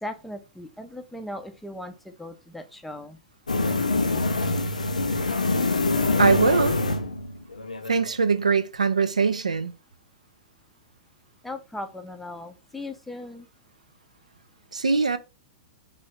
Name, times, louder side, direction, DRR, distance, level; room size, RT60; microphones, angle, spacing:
voice 1, 0.0-3.2 11.4-13.5, left 1 dB, 5° left, 0.4 m, -38 dB
sound 1, 3.5-8.1, left 3 dB, 80° left, 0.4 m, -25 dB
voice 2, 6.2-6.8 7.9-9.7 14.7-15.2, right 5 dB, 75° right, 0.3 m, -22 dB
3.1 x 2.5 x 3.0 m
figure-of-eight pair, 105°, 4 cm